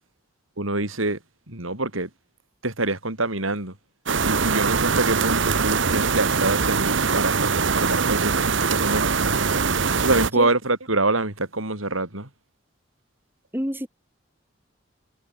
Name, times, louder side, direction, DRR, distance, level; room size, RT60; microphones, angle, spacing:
voice 1, 0.6-1.2 1.5-2.1 2.6-3.7 4.2-9.1 10.0-12.3, right 2 dB, 85° right, 5.6 m, -25 dB
sound 1, 4.1-10.3, right 5 dB, 65° right, 1.1 m, -22 dB
voice 2, 10.2-10.5 13.5-13.9, equal, 10° right, 4.4 m, -29 dB
head